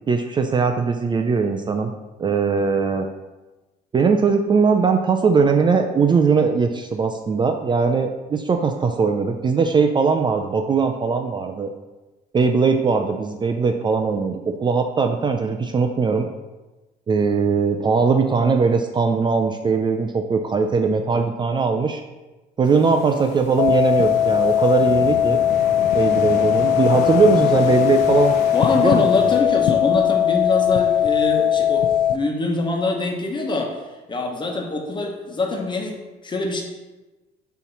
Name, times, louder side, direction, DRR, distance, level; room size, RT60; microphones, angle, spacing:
voice 1, 0.1-1.9 2.2-3.1 3.9-11.7 12.3-16.3 17.1-22.0 22.6-25.4 25.9-28.4 28.7-29.3, right 5 dB, 25° right, 5 dB, 0.4 m, -20 dB
sound 1, 22.6-29.4, left 3 dB, 80° left, 1.0 m, -32 dB
sound 2, 23.6-32.2, left 10 dB, 60° left, 0.5 m, -19 dB
voice 2, 28.5-31.8 32.1-33.7 34.1-36.0 36.2-36.6, left 3 dB, 25° left, 1 dB, 1.2 m, -23 dB
6.9 x 3.1 x 5.7 m, 1.1 s
cardioid pair, 110°, 17 cm